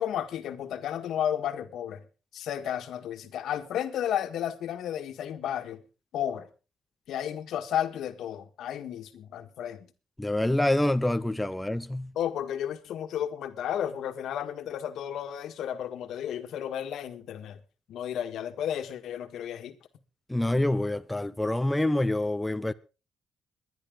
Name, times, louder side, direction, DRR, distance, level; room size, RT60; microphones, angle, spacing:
voice 1, 0.0-2.0 2.3-5.8 6.1-6.5 7.1-9.9 12.2-17.6 17.9-19.8, left 10 dB, 75° left, 1.7 m, -33 dB
voice 2, 10.2-12.1 20.3-22.7, left 1 dB, 10° left, 0.7 m, -26 dB
22.5 x 10.5 x 3.8 m
cardioid pair, 90°, 0 cm